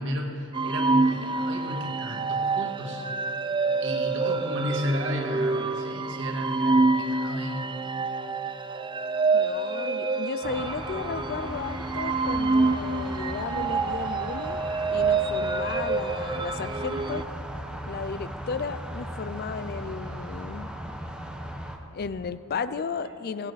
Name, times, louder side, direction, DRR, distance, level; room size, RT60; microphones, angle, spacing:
voice 1, 0.0-3.1 3.8-7.6, equal, 60° right, 1 dB, 1.9 m, -33 dB
sound 1, 0.5-17.2, right 3 dB, 20° right, 0.4 m, -27 dB
voice 2, 9.3-14.6 14.9-17.2 17.9-20.7 21.9-23.5, left 5 dB, 45° left, 13 dB, 0.4 m, -34 dB
sound 2, 10.4-21.8, equal, 5° right, 1.0 m, -37 dB
16.5 x 16.5 x 4.1 m, 2.6 s
head